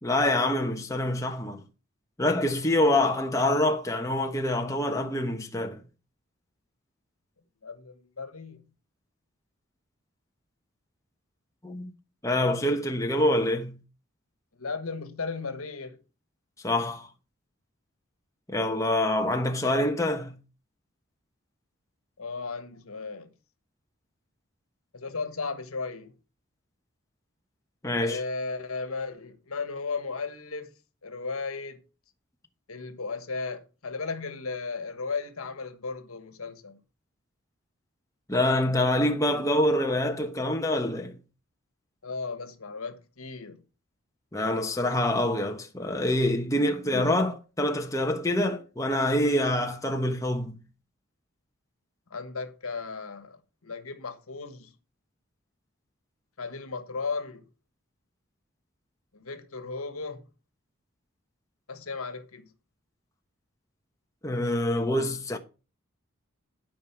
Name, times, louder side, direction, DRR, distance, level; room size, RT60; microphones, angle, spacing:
voice 1, 0.0-1.6 2.2-5.8 11.6-11.9 12.2-13.7 16.6-17.1 18.5-20.4 27.8-28.2 38.3-41.1 44.3-50.6 64.2-65.4, left 1 dB, 15° left, 1.1 m, -26 dB
voice 2, 7.6-8.6 14.6-16.0 22.2-23.3 24.9-26.1 28.0-30.7 31.0-31.8 32.7-36.8 42.0-43.6 46.9-47.3 52.1-53.4 53.6-54.7 56.4-57.4 59.1-60.2 61.7-62.5, left 4 dB, 85° left, 1.4 m, -35 dB
12.0 x 5.3 x 5.9 m
head